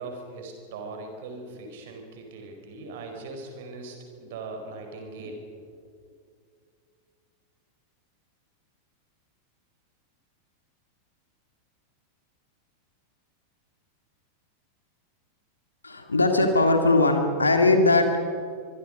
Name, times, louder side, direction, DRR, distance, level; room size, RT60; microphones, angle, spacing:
voice 1, 0.0-5.7, right 3 dB, 55° right, 4 dB, 4.7 m, -40 dB
voice 2, 15.8-18.4, left 2 dB, 80° left, 5 dB, 2.2 m, -20 dB
25.0 x 24.0 x 5.3 m, 2.2 s
figure-of-eight pair, 90°, 0 cm